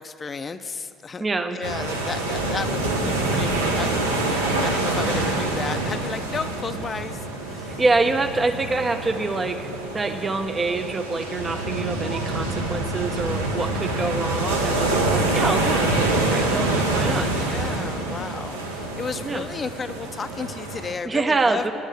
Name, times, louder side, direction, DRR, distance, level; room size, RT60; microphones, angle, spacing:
voice 1, 0.0-1.2 1.5-4.0 4.2-7.8 17.3-21.7, left 5 dB, 35° left, 10 dB, 0.5 m, -33 dB
voice 2, 1.2-1.6 7.8-17.3 19.2-19.4 21.0-21.7, right 3 dB, 30° right, 7 dB, 0.7 m, -25 dB
sound 1, 1.6-20.9, right 2 dB, 90° right, 0.8 m, -26 dB
8.9 x 8.1 x 7.9 m, 2.6 s
hypercardioid pair, 55°, 0 cm